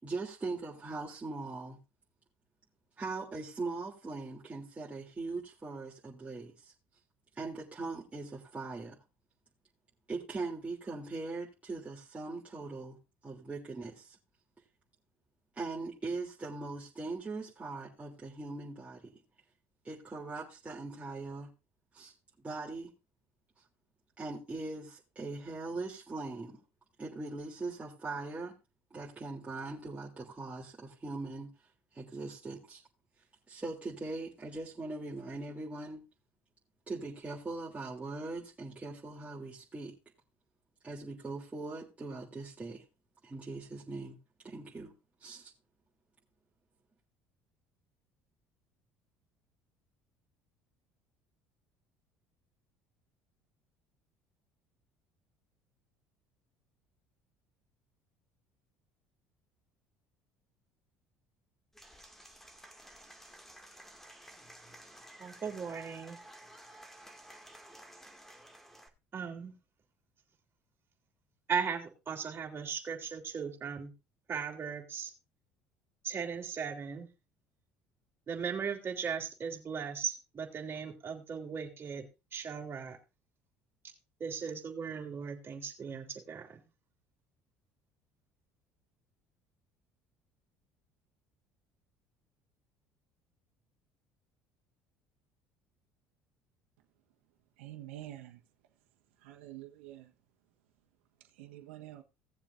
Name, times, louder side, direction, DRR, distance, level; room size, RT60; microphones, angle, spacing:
voice 1, 0.0-1.8 3.0-6.7 7.3-9.0 10.1-13.0 13.2-14.2 15.5-19.2 19.8-21.5 21.9-22.1 22.4-22.9 24.2-26.6 27.0-28.5 28.9-31.5 31.9-32.8 33.5-36.0 36.9-39.9 40.8-42.8 43.2-44.2 44.4-44.9 45.2-45.5, right 3 dB, 20° right, 3.3 m, -40 dB
Applause / Crowd, 61.7-68.9, right 1 dB, 5° left, 2.4 m, -53 dB
voice 2, 65.2-66.2 69.1-69.5 71.5-73.9 74.3-75.1 76.0-77.1 78.3-82.1 82.3-83.0 84.2-86.6, right 6 dB, 35° right, 3.5 m, -37 dB
voice 3, 97.6-98.4 99.2-100.1 101.2-102.0, right 14 dB, 80° right, 1.4 m, -47 dB
18.0 x 7.3 x 2.7 m
hypercardioid pair, 70°, 6 cm